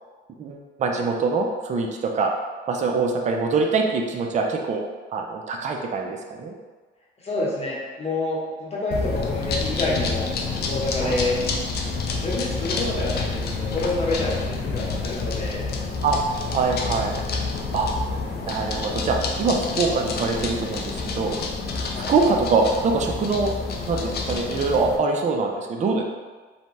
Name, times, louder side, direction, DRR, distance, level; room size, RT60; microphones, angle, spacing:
voice 1, 0.4-2.3 2.7-6.5 11.0-11.3 16.0-16.2 16.5-17.2 17.7-17.9 18.4-21.4 22.1-23.5 23.9-26.0, right 4 dB, 35° right, 2 dB, 0.4 m, -24 dB
voice 2, 7.2-10.3 10.7-11.4 12.2-15.6 16.7-16.8 21.9-22.1, left 2 dB, 30° left, -5 dB, 1.0 m, -27 dB
sound 1, 8.9-25.0, left 4 dB, 55° left, 0.4 m, -28 dB
2.7 x 2.1 x 3.1 m, 1.4 s
cardioid pair, 90°, 20 cm